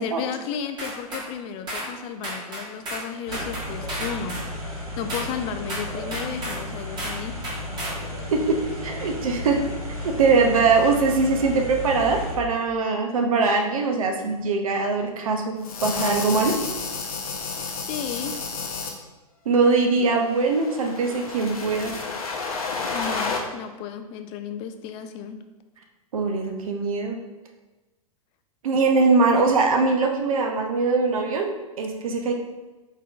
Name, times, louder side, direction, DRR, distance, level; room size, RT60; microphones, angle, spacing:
voice 1, 0.0-4.4 4.6-7.3 17.9-18.3 22.9-25.4 29.3-29.5, left 7 dB, 30° left, 8 dB, 0.4 m, -33 dB
sound 1, 0.8-1.3 1.7-1.9 2.2-3.1 3.3-4.5 5.1-5.3 5.7-6.6 7.0-7.2 7.4-8.0, right 1 dB, 25° right, 1.4 m, -32 dB
sound 2, 3.3-12.4, left 1 dB, 85° right, 1.1 m, -34 dB
voice 2, 8.8-9.6 10.0-16.6 19.5-21.9 26.1-27.2 28.6-32.3, right 4 dB, 70° right, 3 dB, 0.7 m, -22 dB
sound 3, 15.6-18.9 20.0-23.4, left 4 dB, 75° left, 0.7 m, -31 dB
4.5 x 3.6 x 2.4 m, 1.1 s
figure-of-eight pair, 100°, 19 cm